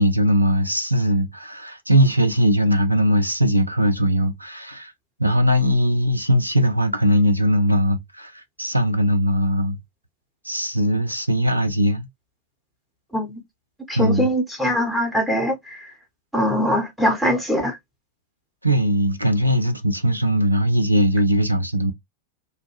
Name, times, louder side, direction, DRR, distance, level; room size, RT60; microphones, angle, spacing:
voice 1, 0.0-4.9 5.2-9.8 10.4-12.1 14.0-14.3 18.6-21.9, equal, 90° right, 0.4 m, -20 dB
voice 2, 13.9-15.9 16.3-17.8, equal, 5° right, 1.0 m, -22 dB
2.4 x 2.1 x 3.0 m
figure-of-eight pair, 90°, 0 cm